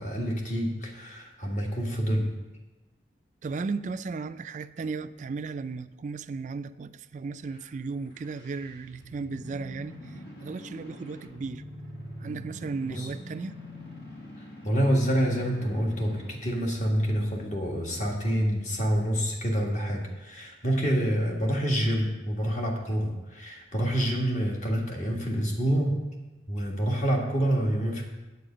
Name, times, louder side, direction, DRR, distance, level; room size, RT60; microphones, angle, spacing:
voice 1, 0.0-2.3 12.9-13.1 14.6-26.0 26.5-28.0, equal, 40° left, 1.6 m, -27 dB
voice 2, 3.4-11.6 12.2-13.6, right 4 dB, 45° right, 0.3 m, -35 dB
sound 1, 8.0-16.6, left 1 dB, 65° left, 1.6 m, -44 dB
8.4 x 8.3 x 5.0 m
head